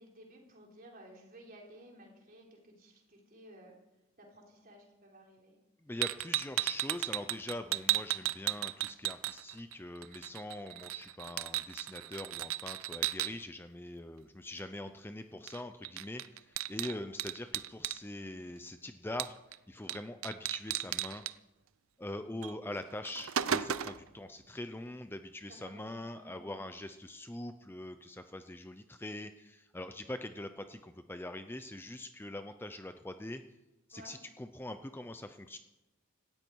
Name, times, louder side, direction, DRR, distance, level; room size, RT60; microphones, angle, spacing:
voice 1, 0.0-3.7 4.2-5.5 16.8-17.0 25.5-26.4 33.9-34.2, right 1 dB, 45° right, -1 dB, 4.0 m, -55 dB
voice 2, 5.8-19.4 19.7-21.3 22.0-33.4 33.9-35.6, left 1 dB, 10° left, 9 dB, 0.6 m, -43 dB
sound 1, 6.0-9.7 10.0-13.3 15.5-15.6 15.8-18.0 19.2-19.6 19.9-20.0 20.2-21.3 22.4-22.5 22.9-24.1, right 12 dB, 85° right, 0.6 m, -34 dB
17.5 x 13.5 x 4.7 m, 0.98 s
head